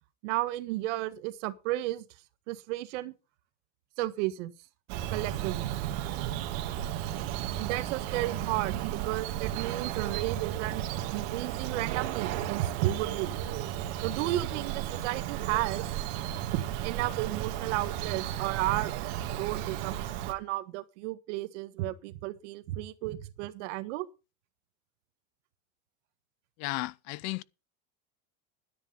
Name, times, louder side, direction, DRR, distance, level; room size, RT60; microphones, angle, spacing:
voice 1, 0.2-2.0 2.5-3.1 4.0-4.5 5.1-5.8 7.6-10.8 11.1-13.3 14.0-15.8 16.4-24.1, right 16 dB, 80° right, 1.6 m, -33 dB
Bird vocalization bird call bird song, 4.9-20.3, right 11 dB, 65° right, 2.3 m, -34 dB
voice 2, 26.6-27.4, left 21 dB, 50° left, 0.6 m, -34 dB
13.0 x 10.0 x 5.5 m
cardioid pair, 165°, 36 cm